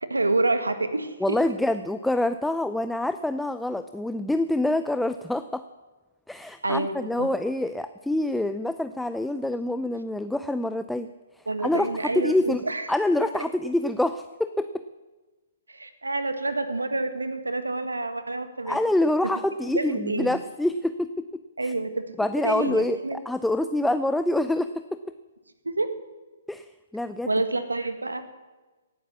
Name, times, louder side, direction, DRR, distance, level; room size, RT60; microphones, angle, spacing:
voice 1, 0.0-1.4 6.6-7.3 11.5-12.9 15.7-18.8 19.7-20.4 21.6-22.1 22.4-23.2 25.6-25.9 27.2-28.2, right 2 dB, 90° right, 9 dB, 1.7 m, -28 dB
voice 2, 1.2-5.6 6.3-12.6 12.9-14.8 18.7-21.7 22.2-25.0 26.5-27.3, left 1 dB, 5° left, 10 dB, 0.5 m, -26 dB
18.5 x 9.4 x 7.2 m, 1.2 s
figure-of-eight pair, 130°, 0 cm